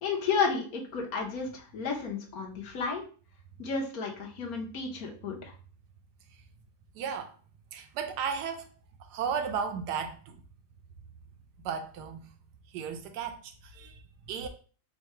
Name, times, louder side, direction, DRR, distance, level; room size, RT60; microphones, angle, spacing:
voice 1, 0.0-3.0 3.6-5.4, left 5 dB, 65° left, 1.3 m, -32 dB
voice 2, 6.9-7.4 7.7-8.7 9.0-10.4 11.6-12.3 12.7-14.5, right 6 dB, 80° right, 1.2 m, -35 dB
3.7 x 2.3 x 4.3 m
omnidirectional pair, 1.7 m